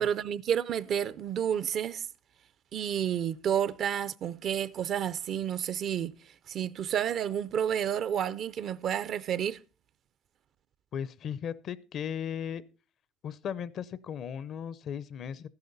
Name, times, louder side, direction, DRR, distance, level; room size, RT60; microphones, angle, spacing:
voice 1, 0.0-2.1 2.7-6.1 6.5-9.6, right 9 dB, 50° right, 0.5 m, -30 dB
voice 2, 10.9-12.6 13.2-15.5, left 8 dB, 50° left, 0.6 m, -36 dB
12.0 x 10.5 x 4.0 m
cardioid pair, 110°, 0 cm